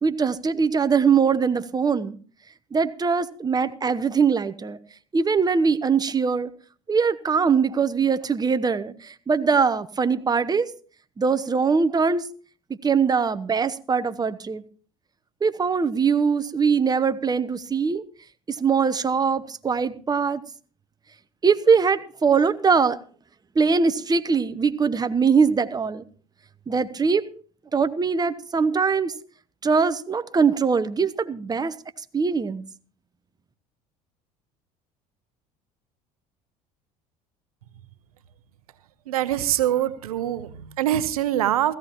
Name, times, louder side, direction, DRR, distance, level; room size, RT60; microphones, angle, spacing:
voice 1, 0.0-2.2 2.7-4.8 5.1-6.5 6.9-10.7 11.2-12.3 12.8-14.6 15.4-18.0 18.5-20.4 21.4-23.0 23.5-26.0 26.7-27.2 27.7-29.1 29.6-31.7 32.1-32.6, right 5 dB, 20° right, 12 dB, 0.9 m, -22 dB
voice 2, 39.1-41.7, right 12 dB, 90° right, 15 dB, 0.8 m, -24 dB
16.5 x 14.5 x 3.0 m, 0.41 s
hypercardioid pair, 75°, 18 cm